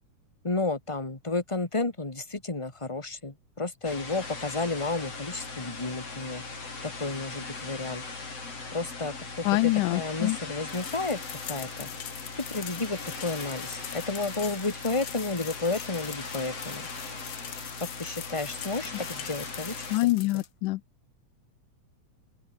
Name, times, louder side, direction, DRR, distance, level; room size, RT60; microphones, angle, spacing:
voice 1, 0.4-6.4 6.8-8.0 8.7-11.2 11.5-11.9 12.4-16.9 17.8-20.4, left 3 dB, 10° left, 1.9 m, -32 dB
sound 1, 3.8-20.0, left 4 dB, 45° left, 6.6 m, -39 dB
voice 2, 9.5-10.4 19.9-20.8, left 19 dB, 85° left, 2.1 m, -25 dB
sound 2, 10.7-20.5, left 10 dB, 65° left, 1.1 m, -43 dB
open air
omnidirectional pair, 3.7 m